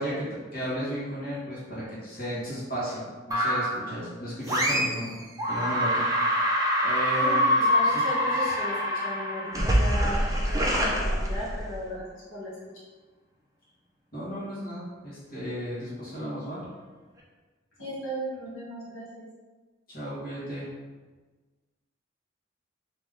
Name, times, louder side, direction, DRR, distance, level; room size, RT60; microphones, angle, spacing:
voice 1, 0.0-5.2 5.5-6.0 6.3-6.5 6.8-8.0 8.4-8.5 14.1-16.7 19.9-20.7, equal, 45° left, -9 dB, 1.4 m, -34 dB
sound 1, 3.3-3.9 4.5-5.1 5.4-11.8, equal, 15° right, 0.5 m, -25 dB
voice 2, 7.2-10.2 10.5-12.6 17.8-19.2, equal, 90° left, -8 dB, 1.3 m, -36 dB
3.4 x 2.9 x 3.6 m, 1.3 s
head